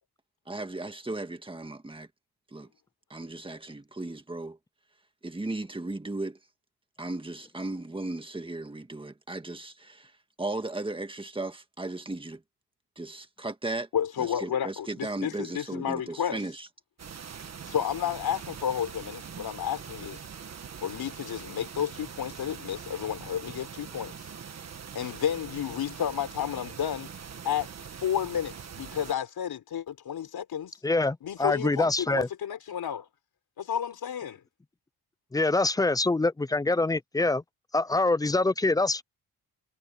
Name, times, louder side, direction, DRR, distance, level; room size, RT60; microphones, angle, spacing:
voice 1, 0.5-2.1 2.5-2.7 3.1-4.6 5.2-6.4 7.0-10.1 10.4-12.4 13.0-13.9 14.2-16.7, right 2 dB, 15° right, 1.7 m, -36 dB
voice 2, 13.9-16.4 17.7-20.2 20.8-24.1 24.9-27.1 27.4-27.7 28.0-30.7 31.2-33.1 33.6-34.4, left 9 dB, 70° left, 3.9 m, -31 dB
sound 1, 17.0-29.1, right 7 dB, 40° right, 1.6 m, -43 dB
voice 3, 30.8-32.3 35.3-37.4 37.7-39.0, left 2 dB, 10° left, 0.4 m, -25 dB
wide cardioid pair, 135°, 38 cm